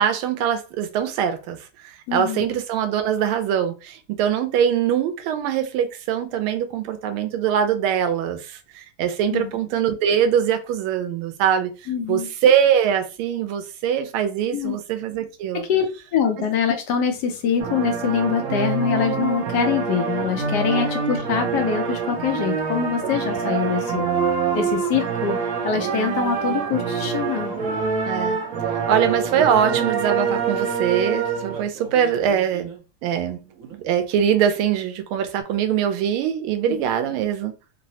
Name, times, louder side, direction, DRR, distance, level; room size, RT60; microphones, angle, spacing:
voice 1, 0.0-1.6 1.8-11.7 12.1-15.6 20.7-20.9 28.0-28.4 28.9-32.7 33.0-33.4 33.7-37.5, right 9 dB, 90° right, 1.5 m, -22 dB
voice 2, 2.1-2.5 9.3-9.5 11.9-12.3 14.5-14.8 15.7-15.9 16.1-24.0 24.5-25.3 25.6-27.5 36.7-36.8, left 7 dB, 70° left, 1.0 m, -24 dB
sound 1, 17.6-32.8 33.1-33.2 33.6-33.7 35.4-35.5, right 6 dB, 70° right, 0.8 m, -26 dB
3.7 x 2.0 x 2.7 m
omnidirectional pair, 2.2 m